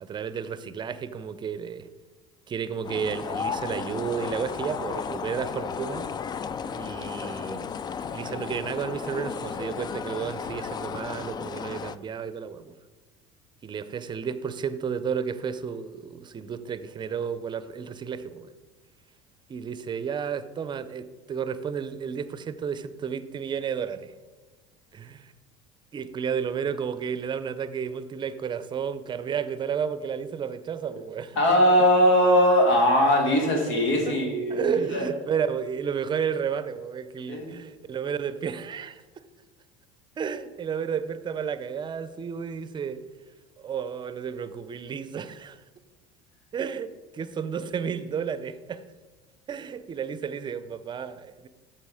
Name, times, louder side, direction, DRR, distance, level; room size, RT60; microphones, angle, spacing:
voice 1, 0.0-1.9 2.5-6.1 6.7-7.7 8.1-12.7 13.6-18.5 19.5-24.1 24.9-25.3 25.9-31.4 34.1-34.2 34.5-39.0 40.2-43.0 43.6-45.6 46.5-48.8 49.5-51.5, right 7 dB, 30° right, 0.6 m, -32 dB
sound 1, 2.8-12.0, left 6 dB, 25° left, 0.4 m, -34 dB
voice 2, 31.4-34.7 34.9-35.1 37.3-37.5, equal, 85° left, 2.1 m, -20 dB
8.7 x 6.9 x 4.9 m
supercardioid pair, 105°, 16 cm